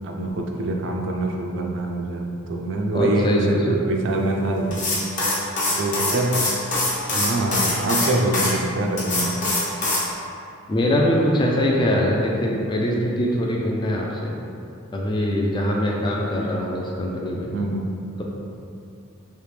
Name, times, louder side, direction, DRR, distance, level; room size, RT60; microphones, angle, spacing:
voice 1, 0.0-4.8 5.8-6.5 7.1-9.3 17.5-17.8, right 2 dB, 60° right, 2 dB, 0.4 m, -24 dB
voice 2, 2.9-3.8 10.7-14.3 14.9-17.5 18.2-18.3, equal, 25° left, -2 dB, 0.3 m, -22 dB
sound 1, 4.7-8.5 9.0-10.1, left 2 dB, 40° left, 0.7 m, -23 dB
3.3 x 2.9 x 3.2 m, 2.6 s
head